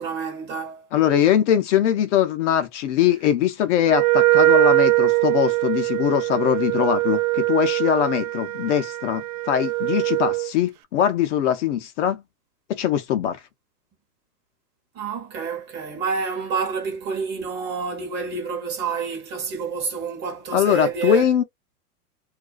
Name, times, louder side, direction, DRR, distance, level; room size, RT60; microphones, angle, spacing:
voice 1, 0.0-0.9 14.9-21.3, right 5 dB, 20° right, 0.8 m, -28 dB
voice 2, 0.9-12.2 12.7-13.4 20.5-21.4, left 10 dB, 50° left, 0.6 m, -21 dB
Wind instrument woodwind instrument, 3.8-10.5, right 18 dB, 70° right, 0.5 m, -21 dB
2.4 x 2.2 x 2.3 m
hypercardioid pair, 135°, 46 cm